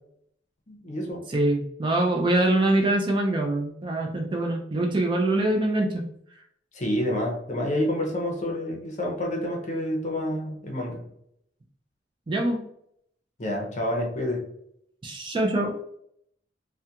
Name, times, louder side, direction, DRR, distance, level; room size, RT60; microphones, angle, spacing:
voice 1, 0.7-1.2 6.7-11.0 13.4-14.4, left 1 dB, 40° left, 0 dB, 0.6 m, -28 dB
voice 2, 1.3-6.0 12.3-12.6 15.0-15.7, right 1 dB, 25° right, 1 dB, 0.3 m, -24 dB
2.3 x 2.2 x 2.8 m, 0.71 s
head